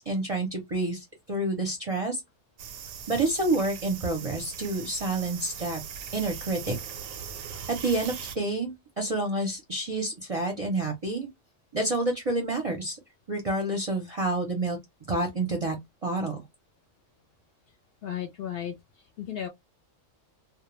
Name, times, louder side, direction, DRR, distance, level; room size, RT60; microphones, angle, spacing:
voice 1, 0.1-2.2 3.1-5.8 6.1-6.8 7.7-11.3 11.7-13.0 13.3-14.8 15.1-15.8 16.0-16.4, right 2 dB, 40° right, 0.6 m, -28 dB
sound 1, 2.6-8.4, right 8 dB, 85° right, 1.0 m, -40 dB
voice 2, 18.0-19.5, left 10 dB, 60° left, 0.7 m, -35 dB
2.3 x 2.1 x 3.0 m
omnidirectional pair, 1.4 m